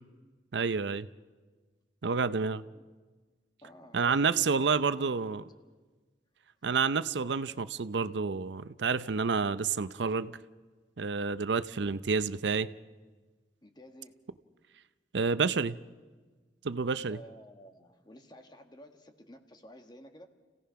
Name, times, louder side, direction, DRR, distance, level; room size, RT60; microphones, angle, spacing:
voice 1, 0.5-1.1 2.0-2.6 3.9-5.4 6.6-10.4 11.0-12.7 15.1-15.8 16.6-17.2, right 5 dB, 85° right, 14 dB, 0.6 m, -29 dB
voice 2, 3.6-5.4 13.6-14.2 17.1-20.3, equal, 25° left, 6 dB, 1.5 m, -52 dB
30.0 x 16.5 x 5.8 m, 1.4 s
head